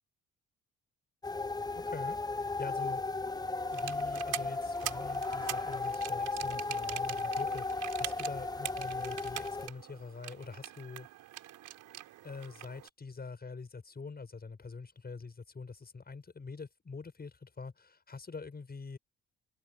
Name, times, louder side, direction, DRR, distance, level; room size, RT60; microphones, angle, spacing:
sound 1, 1.2-9.7, left 3 dB, 15° left, 0.8 m, -35 dB
voice 1, 1.7-3.0 3.7-11.1 12.2-19.0, left 4 dB, 30° left, 8.0 m, -45 dB
sound 2, 3.7-12.9, right 14 dB, 90° right, 4.2 m, -44 dB
cardioid pair, 90°, 30 cm